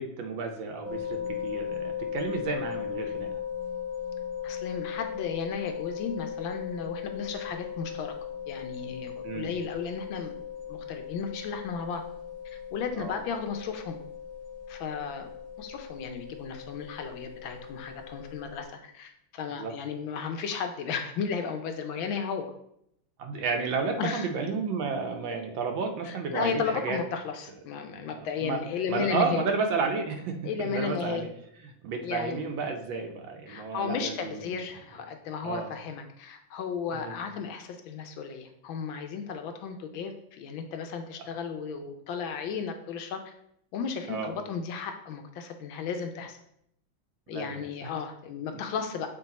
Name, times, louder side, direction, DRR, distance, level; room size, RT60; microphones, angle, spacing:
voice 1, 0.0-3.3 9.2-9.5 13.0-13.2 19.5-19.7 23.2-27.0 28.4-28.6 28.9-31.3 31.8-34.4 35.4-35.7 36.9-37.1 44.1-44.3 47.3-47.6, right 4 dB, 70° right, 4 dB, 1.4 m, -31 dB
sound 1, 0.8-18.7, left 8 dB, 40° right, 0.8 m, -38 dB
voice 2, 4.4-8.2 8.5-10.4 10.7-12.0 12.4-14.0 14.7-15.3 15.6-22.5 24.0-24.3 26.0-29.4 30.4-31.3 32.0-32.4 33.5-43.3 43.7-46.4 47.3-49.1, left 6 dB, 75° left, 6 dB, 1.3 m, -34 dB
7.3 x 3.3 x 4.0 m, 0.74 s
omnidirectional pair, 2.3 m